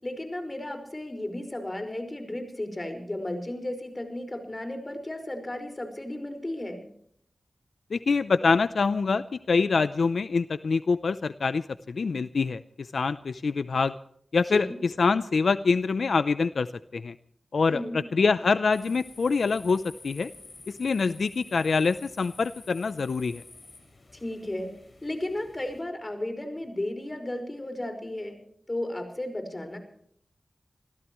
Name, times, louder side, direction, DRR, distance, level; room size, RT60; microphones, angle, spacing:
voice 1, 0.0-6.8 14.5-14.8 17.7-18.0 24.1-24.7 25.0-28.4 28.7-29.8, left 1 dB, 30° left, 6 dB, 5.2 m, -34 dB
voice 2, 7.9-13.9 14.3-16.7 16.9-17.1 17.5-17.8 18.1-20.3 20.7-23.4, left 4 dB, 85° left, 13 dB, 0.6 m, -25 dB
sound 1, 18.7-25.8, left 3 dB, 60° left, 5.9 m, -50 dB
27.5 x 15.5 x 3.1 m, 0.65 s
cardioid pair, 50°, 0 cm